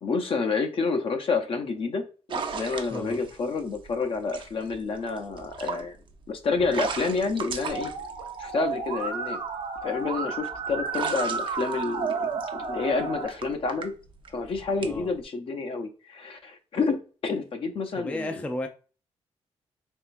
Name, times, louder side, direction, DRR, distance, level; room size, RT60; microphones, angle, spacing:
voice 1, 0.0-2.0 2.3-6.0 6.3-7.9 8.4-9.4 9.8-13.9 14.3-18.3, left 4 dB, 55° left, 0.7 m, -29 dB
sound 1, 2.3-9.0 9.6-15.2, right 5 dB, 50° right, 0.5 m, -38 dB
voice 2, 2.9-3.2 14.8-15.1 18.0-18.7, left 1 dB, 10° left, 0.4 m, -33 dB
Musical instrument, 7.7-13.3, right 4 dB, 75° right, 0.8 m, -32 dB
3.6 x 3.3 x 2.5 m
cardioid pair, 120°, 11 cm